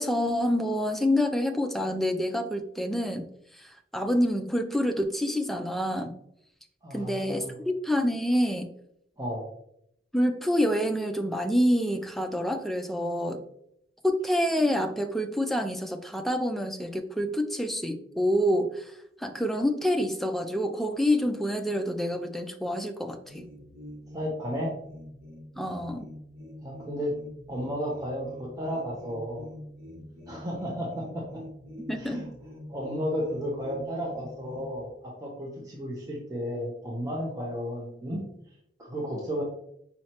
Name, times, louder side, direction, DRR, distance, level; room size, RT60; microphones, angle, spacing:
voice 1, 0.0-3.3 3.6-6.1 6.9-8.7 10.1-13.4 14.0-23.5 25.6-26.1 31.9-32.2, equal, ahead, 5 dB, 0.3 m, -27 dB
voice 2, 6.8-7.6 9.2-9.5 24.1-24.7 26.6-27.1 27.5-29.5 30.3-31.2 32.0-32.2 32.7-38.2 38.8-39.4, equal, 20° right, -3 dB, 0.7 m, -33 dB
sound 1, 23.3-34.8, left 1 dB, 60° right, 1.6 m, -46 dB
5.5 x 3.1 x 2.9 m, 0.73 s
head